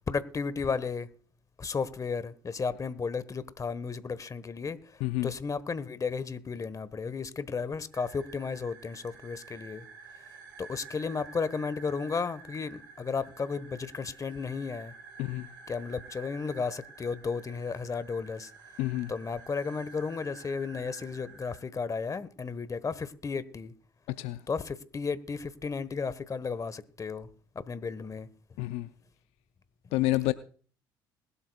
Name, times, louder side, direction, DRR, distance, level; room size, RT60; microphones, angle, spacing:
voice 1, 0.1-1.1 1.6-9.9 10.6-14.9 15.7-18.5 19.1-23.7 24.5-27.3 27.5-28.3, left 5 dB, 30° left, 1.2 m, -34 dB
sound 1, 7.9-21.6, right 5 dB, 90° right, 3.0 m, -50 dB
voice 2, 18.8-19.1 24.2-24.4 28.6-28.9 29.9-30.3, left 18 dB, 70° left, 0.6 m, -28 dB
21.0 x 12.5 x 2.3 m
hypercardioid pair, 60°, 11 cm